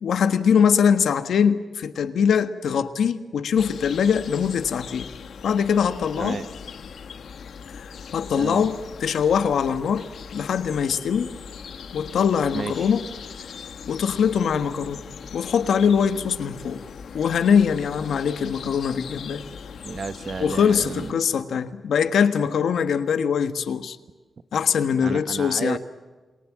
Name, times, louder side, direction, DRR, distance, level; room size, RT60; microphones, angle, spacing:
voice 1, 0.0-5.1 5.4-6.4 7.8-10.1 10.3-11.3 11.9-13.0 13.9-15.0 15.3-16.8 17.1-19.4 20.4-24.0 24.5-25.8, left 7 dB, 90° left, 10 dB, 1.5 m, -22 dB
sound 1, 3.6-21.1, left 6 dB, 70° left, 1.4 m, -40 dB
voice 2, 6.2-6.5 8.4-8.7 12.5-12.9 19.8-21.1 25.0-25.8, right 5 dB, 40° right, 12 dB, 1.0 m, -32 dB
28.5 x 23.0 x 7.5 m, 1.3 s
wide cardioid pair, 175°, 0 cm